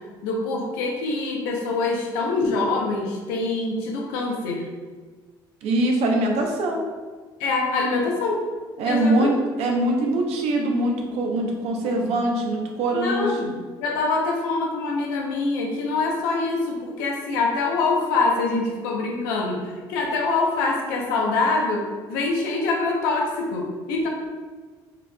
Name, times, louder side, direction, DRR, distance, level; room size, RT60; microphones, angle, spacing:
voice 1, 0.2-4.7 7.4-8.4 8.8-9.3 12.9-13.5 13.8-24.1, left 3 dB, 90° left, 0 dB, 0.7 m, -24 dB
voice 2, 5.6-6.8 8.8-13.5, right 1 dB, 70° right, 1 dB, 0.8 m, -23 dB
4.8 x 3.7 x 2.3 m, 1.4 s
supercardioid pair, 70°, 11 cm